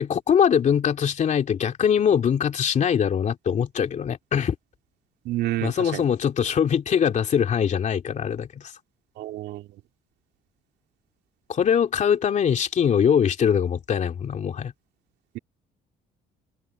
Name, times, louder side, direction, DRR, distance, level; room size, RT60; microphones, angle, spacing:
voice 1, 0.0-4.6 5.6-8.7 11.5-14.7, left 8 dB, 45° left, 2.9 m, -22 dB
voice 2, 5.2-6.0 9.2-9.7, right 15 dB, 80° right, 2.8 m, -29 dB
open air
cardioid pair, 110°, 17 cm